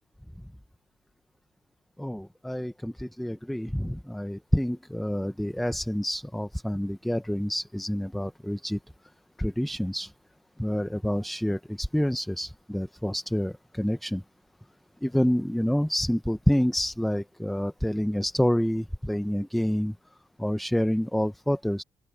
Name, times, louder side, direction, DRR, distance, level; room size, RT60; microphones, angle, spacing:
voice 1, 2.0-8.8 9.4-10.1 10.6-14.2 15.0-19.9 20.4-21.8, equal, ahead, 0.5 m, -28 dB
open air
cardioid pair, 145°, 9 cm